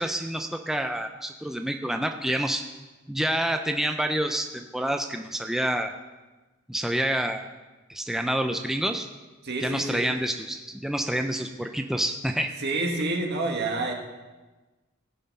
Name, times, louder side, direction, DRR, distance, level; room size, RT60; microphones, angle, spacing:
voice 1, 0.0-2.6 3.1-5.9 6.7-7.4 7.9-9.1 9.6-12.5, right 1 dB, ahead, 5 dB, 0.4 m, -28 dB
voice 2, 9.4-10.1 12.6-13.9, right 2 dB, 55° right, 2 dB, 1.6 m, -28 dB
17.0 x 5.8 x 5.4 m, 1.2 s
head